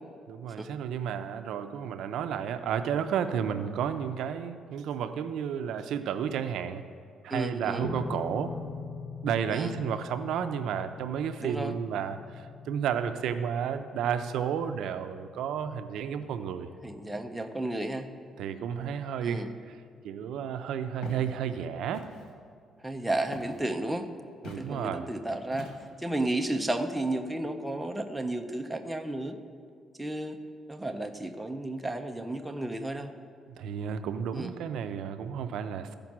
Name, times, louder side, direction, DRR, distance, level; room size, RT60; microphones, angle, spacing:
voice 1, 0.3-6.8 7.2-8.5 9.2-16.7 18.4-22.1 24.4-25.1 33.6-36.0, right 8 dB, 75° right, 9 dB, 0.5 m, -32 dB
voice 2, 7.3-7.9 9.5-9.7 11.4-11.7 16.8-18.1 19.2-19.5 22.8-24.1 24.4-25.7 26.0-29.3 30.0-30.4 30.7-33.1 34.3-34.5, right 1 dB, 5° right, 4 dB, 0.5 m, -32 dB
sound 1, 7.8-20.3, left 5 dB, 40° left, 0.6 m, -44 dB
Walk footsteps, 21.0-21.3 21.9-22.3 23.3-23.7 24.4-24.7 25.5-26.0, left 3 dB, 75° left, 1.2 m, -44 dB
14.0 x 5.2 x 6.0 m, 2.2 s
cardioid pair, 140°, 0 cm